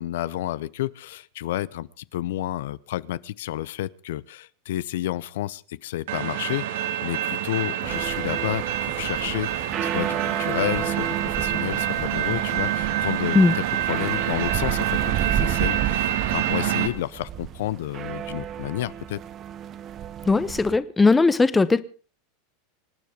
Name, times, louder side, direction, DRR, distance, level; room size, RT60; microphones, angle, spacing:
voice 1, 0.0-19.2, left 14 dB, 80° left, 0.8 m, -31 dB
sound 1, 6.1-16.9, right 11 dB, 75° right, 2.4 m, -27 dB
sound 2, 7.8-20.8, right 10 dB, 30° right, 0.9 m, -32 dB
voice 2, 20.3-21.8, left 3 dB, 10° left, 1.0 m, -18 dB
25.5 x 9.7 x 5.1 m
supercardioid pair, 145°, 0 cm